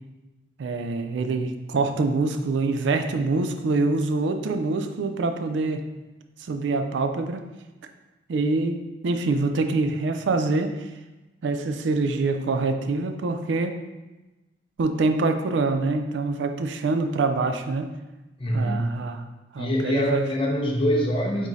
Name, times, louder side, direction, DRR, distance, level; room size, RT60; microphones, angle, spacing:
voice 1, 0.6-5.9 6.4-7.5 8.3-10.9 11.4-13.8 14.8-17.9 18.5-19.2 19.5-20.3, right 3 dB, 75° right, 7 dB, 0.4 m, -25 dB
voice 2, 18.4-18.9 19.6-21.5, equal, 30° left, 0 dB, 0.5 m, -24 dB
4.8 x 3.7 x 2.7 m, 1.1 s
head